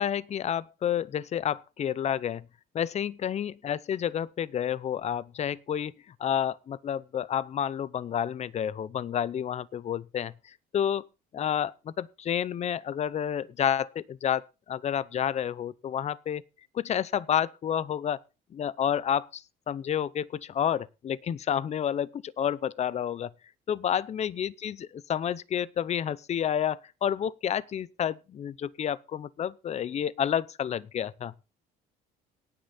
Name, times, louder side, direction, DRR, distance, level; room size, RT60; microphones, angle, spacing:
voice 1, 0.0-2.5 2.7-5.9 6.2-11.1 11.3-16.4 16.7-18.2 18.5-23.3 23.7-31.3, left 9 dB, 40° left, 0.7 m, -30 dB
18.0 x 6.5 x 4.2 m
cardioid pair, 110°, 17 cm